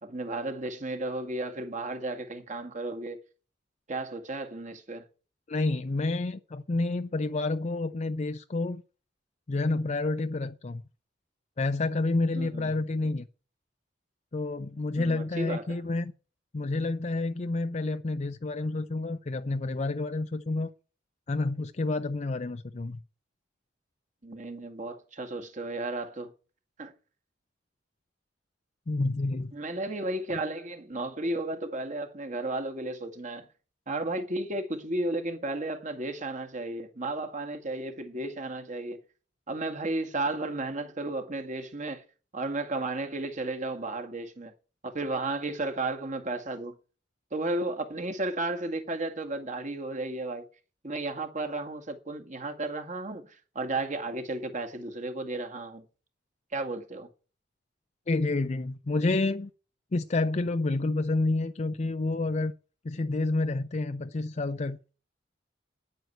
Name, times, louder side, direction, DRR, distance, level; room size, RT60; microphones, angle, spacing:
voice 1, 0.0-3.2 3.9-5.1 12.4-12.7 15.0-15.8 24.2-26.3 26.8-26.9 29.5-33.5 33.9-39.0 39.5-42.0 42.3-44.5 44.8-46.8 47.3-50.5 50.8-55.9 56.5-57.1, right 2 dB, 45° right, 2.0 m, -33 dB
voice 2, 5.5-8.8 9.5-10.8 11.6-13.3 14.3-16.1 16.5-20.7 21.3-23.0 28.9-29.5 58.1-59.5 59.9-62.5 62.8-64.9, left 2 dB, 40° left, 0.5 m, -29 dB
9.7 x 9.0 x 7.8 m
head